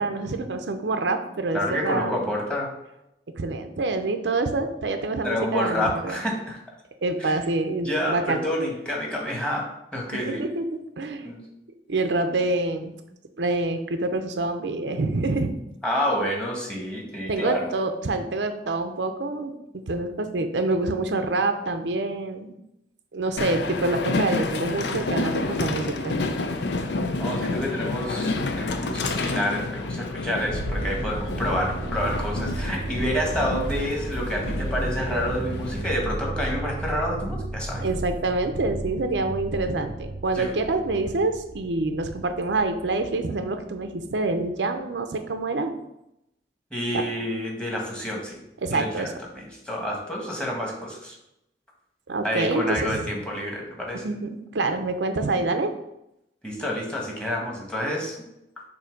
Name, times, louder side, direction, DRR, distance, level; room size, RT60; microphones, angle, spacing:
voice 1, 0.0-2.1 3.3-6.2 7.0-8.5 10.3-10.7 11.0-11.3 11.9-12.9 13.4-15.5 17.3-19.5 19.9-22.5 23.1-26.2 37.8-45.7 48.6-49.1 52.1-53.1 53.9-55.7, right 2 dB, 85° right, 7 dB, 0.6 m, -26 dB
voice 2, 1.5-2.7 5.2-6.6 7.2-7.4 7.8-9.7 9.9-10.4 11.2-11.4 15.8-17.7 27.2-37.9 40.3-40.5 46.7-48.4 48.7-51.2 52.2-54.1 56.4-58.1, equal, 5° left, -2 dB, 1.3 m, -28 dB
Train, 23.4-35.9, left 3 dB, 70° left, 0.5 m, -29 dB
sound 1, 30.5-44.4, right 1 dB, 30° right, 0.5 m, -33 dB
6.9 x 2.7 x 5.2 m, 0.85 s
head